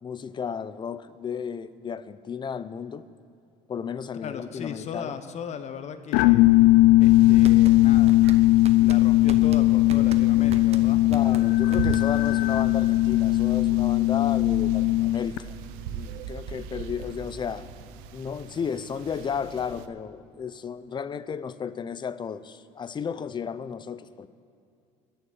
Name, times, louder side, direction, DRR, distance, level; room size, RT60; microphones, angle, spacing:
voice 1, 0.0-3.0 3.7-5.1 11.1-15.6 15.9-17.7 18.1-24.3, left 7 dB, 30° left, 0.6 m, -33 dB
voice 2, 4.2-6.5 7.0-8.2 8.8-11.0, left 7 dB, 45° left, 1.1 m, -37 dB
sound 1, 6.1-15.4, left 18 dB, 85° left, 0.5 m, -19 dB
sound 2, 7.0-19.9, right 9 dB, 85° right, 0.7 m, -39 dB
sound 3, 7.2-12.4, right 6 dB, 40° right, 1.1 m, -39 dB
21.0 x 7.1 x 7.3 m
cardioid pair, 105°, 16 cm